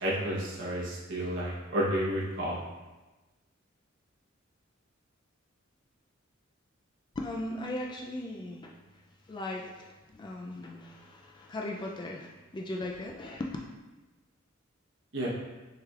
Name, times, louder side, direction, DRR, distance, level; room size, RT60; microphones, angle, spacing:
voice 1, 0.0-2.6 15.1-15.3, equal, 65° right, -5 dB, 0.9 m, -31 dB
voice 2, 7.2-8.7 9.3-13.6, left 1 dB, 25° left, 0 dB, 0.3 m, -38 dB
6.5 x 3.2 x 2.4 m, 1.1 s
head